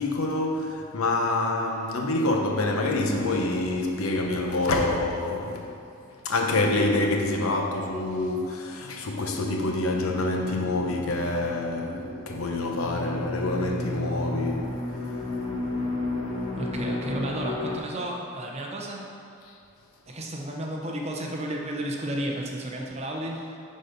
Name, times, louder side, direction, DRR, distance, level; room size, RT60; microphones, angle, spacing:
voice 1, 0.0-5.8 6.2-15.2 19.5-19.6, left 2 dB, 75° left, 0.9 m, -27 dB
sound 1, 9.8-17.8, left 2 dB, 25° left, 1.0 m, -33 dB
voice 2, 16.6-19.1 20.1-23.6, right 1 dB, 30° right, 0.8 m, -32 dB
9.8 x 4.1 x 5.1 m
head